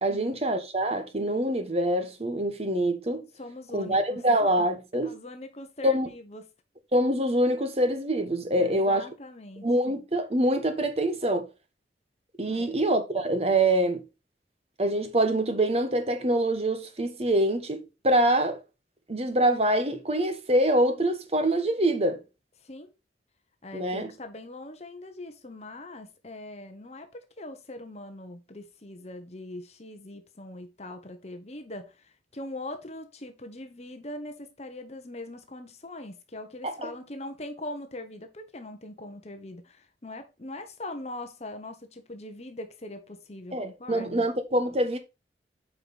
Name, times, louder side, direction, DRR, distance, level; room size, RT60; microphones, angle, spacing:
voice 1, 0.0-3.2 3.7-5.1 5.8-6.1 6.9-9.0 9.6-11.5 12.4-14.0 14.8-18.6 19.1-22.2 23.7-24.1 36.6-36.9 43.5-45.0, right 1 dB, 35° right, 1.3 m, -25 dB
voice 2, 3.4-4.2 5.0-6.5 8.5-9.7 12.4-12.8 22.6-22.9 23.6-44.2, left 1 dB, 35° left, 1.1 m, -41 dB
8.6 x 4.9 x 4.1 m
head